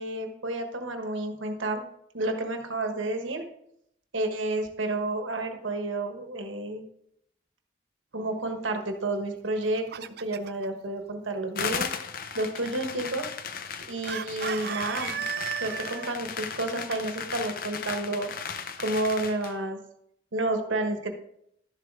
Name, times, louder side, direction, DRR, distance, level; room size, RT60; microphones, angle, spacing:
voice 1, 0.0-1.8 2.1-3.4 4.1-6.8 8.1-9.8 10.2-11.9 12.3-13.3 13.9-15.2 15.6-18.3 18.8-19.8 20.3-21.1, right 2 dB, 80° right, 5 dB, 1.3 m, -30 dB
Chicken rooster, 9.4-10.7 14.1-16.2, right 8 dB, 55° right, 0.4 m, -34 dB
sound 1, 11.6-19.6, left 6 dB, 45° left, 0.6 m, -36 dB
12.0 x 7.3 x 3.7 m, 0.75 s
head